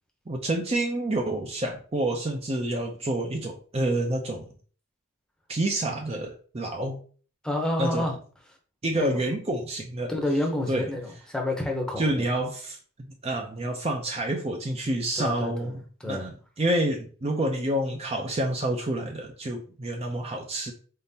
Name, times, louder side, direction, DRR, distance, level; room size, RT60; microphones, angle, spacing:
voice 1, 0.3-4.5 5.5-7.0 7.8-8.1 8.8-10.1 10.7-10.9 12.0-16.3 16.6-20.7, right 1 dB, 30° right, 2 dB, 0.5 m, -28 dB
voice 2, 7.4-8.2 9.0-9.2 10.1-12.2 15.2-16.3, left 1 dB, 5° left, 1 dB, 0.7 m, -29 dB
4.0 x 3.7 x 2.7 m, 0.41 s
head